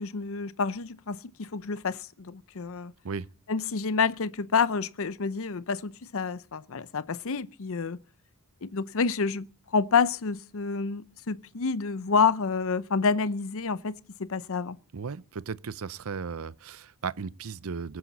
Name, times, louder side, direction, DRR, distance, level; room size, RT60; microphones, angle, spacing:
voice 1, 0.0-2.9 3.5-8.0 8.6-13.9 14.2-14.8, left 5 dB, 65° left, 0.7 m, -28 dB
voice 2, 14.9-18.0, right 5 dB, 70° right, 0.6 m, -36 dB
23.0 x 9.7 x 4.1 m
head